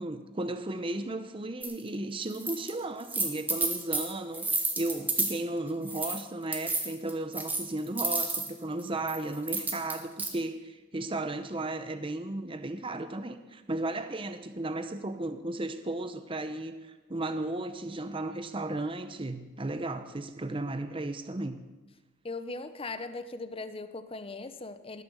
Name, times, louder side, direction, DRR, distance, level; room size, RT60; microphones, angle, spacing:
voice 1, 0.0-21.6, right 2 dB, 25° right, 9 dB, 0.7 m, -35 dB
sound 1, 1.6-1.7 2.3-2.7 3.0-5.4 5.9-6.2 6.5-8.5 9.1-10.3, right 3 dB, 10° right, 1.4 m, -31 dB
voice 2, 22.2-25.0, left 3 dB, 25° left, 11 dB, 0.7 m, -39 dB
19.5 x 6.8 x 7.0 m, 1.2 s
head